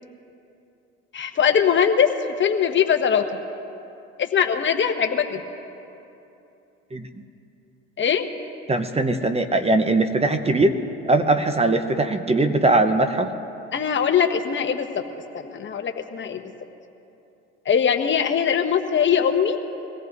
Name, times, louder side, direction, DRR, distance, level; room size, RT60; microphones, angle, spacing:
voice 1, 1.1-2.1 2.4-3.4 4.2-5.4 8.0-8.3 13.7-14.9 15.3-16.4 17.7-19.6, left 7 dB, 35° left, 6 dB, 1.2 m, -21 dB
voice 2, 8.7-10.7 11.1-13.3, right 2 dB, 20° right, 7 dB, 1.0 m, -20 dB
24.0 x 17.5 x 2.7 m, 2.9 s
hypercardioid pair, 70°, 32 cm